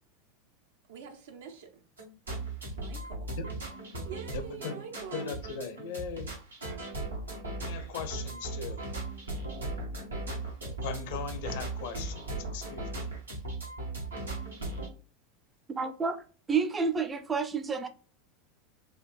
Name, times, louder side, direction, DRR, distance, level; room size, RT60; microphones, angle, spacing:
voice 1, 0.9-1.8 2.8-3.3 4.0-5.3, right 6 dB, 60° right, 0.6 m, -44 dB
sound 1, 2.0-14.9, right 2 dB, 80° right, 1.0 m, -37 dB
voice 2, 4.3-4.8 5.1-6.4 7.6-8.9 10.8-13.1, left 6 dB, 55° left, 0.5 m, -39 dB
voice 3, 15.7-16.2 16.5-17.9, right 5 dB, 20° right, 0.5 m, -29 dB
4.4 x 2.5 x 2.3 m
figure-of-eight pair, 80°, 0 cm